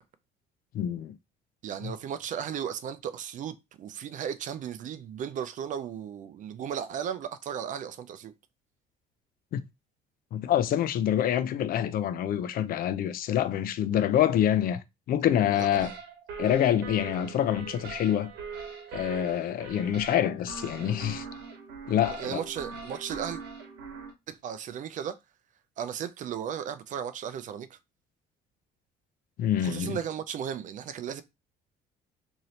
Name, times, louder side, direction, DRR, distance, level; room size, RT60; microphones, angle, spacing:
voice 1, 0.7-1.2 1.8-1.9 9.5-9.6 10.3-14.8 15.1-15.9 16.4-18.3 18.9-21.2 21.9-22.4 29.4-30.0, left 10 dB, 60° left, 0.4 m, -26 dB
voice 2, 1.6-8.3 15.5-16.0 22.0-23.4 24.3-25.2 25.8-27.8 29.6-31.2, right 8 dB, 50° right, 0.4 m, -35 dB
sound 1, 15.8-24.1, right 5 dB, 80° right, 1.0 m, -41 dB
3.0 x 2.7 x 2.7 m
cardioid pair, 110°, 17 cm